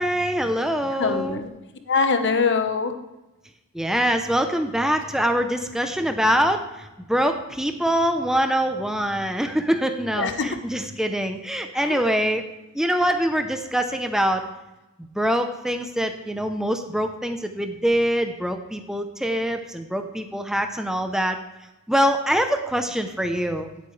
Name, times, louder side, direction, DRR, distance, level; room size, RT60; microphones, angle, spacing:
voice 1, 0.0-1.4 3.7-12.4 12.7-14.5 15.1-21.4 21.9-23.7, equal, ahead, 6 dB, 0.7 m, -24 dB
voice 2, 1.0-1.5 1.9-2.9 10.2-10.6 11.8-12.0, left 4 dB, 55° left, 7 dB, 1.1 m, -23 dB
16.0 x 8.5 x 3.3 m, 1.0 s
head